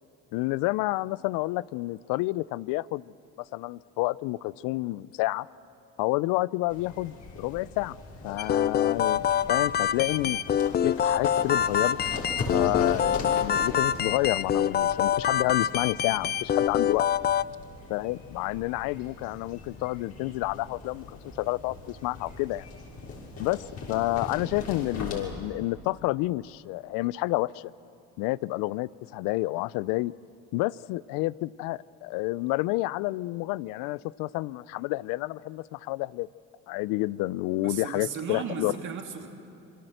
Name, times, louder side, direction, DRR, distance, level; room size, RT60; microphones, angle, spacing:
voice 1, 0.3-5.5 6.0-8.0 8.2-12.0 12.5-17.1 17.9-22.6 23.4-27.7 28.2-30.1 30.5-36.3 36.7-38.8, left 20 dB, 80° left, 21 dB, 0.6 m, -29 dB
sound 1, 6.7-25.3, left 3 dB, 55° left, 6.3 m, -40 dB
sound 2, 8.4-17.4, left 9 dB, 30° left, 0.5 m, -26 dB
voice 2, 37.5-39.3, right 6 dB, 60° right, 0 dB, 3.1 m, -35 dB
27.0 x 23.0 x 7.9 m, 2.7 s
supercardioid pair, 80°, 33 cm